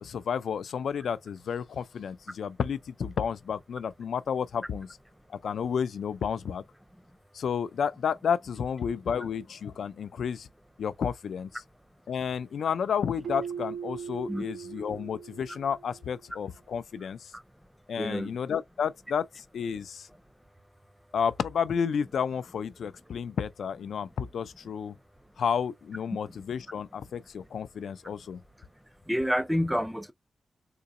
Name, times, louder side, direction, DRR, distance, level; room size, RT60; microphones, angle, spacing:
voice 1, 0.0-4.9 5.3-6.6 7.3-10.5 10.8-11.6 12.1-17.3 17.9-20.1 21.1-24.9 25.4-28.4, left 7 dB, 80° left, 0.4 m, -31 dB
Keyboard (musical), 13.2-16.0, right 7 dB, 80° right, 0.4 m, -39 dB
voice 2, 18.0-18.4 26.1-26.2 29.1-30.1, equal, 5° right, 0.4 m, -28 dB
3.8 x 2.8 x 2.5 m
wide cardioid pair, 170°, 0 cm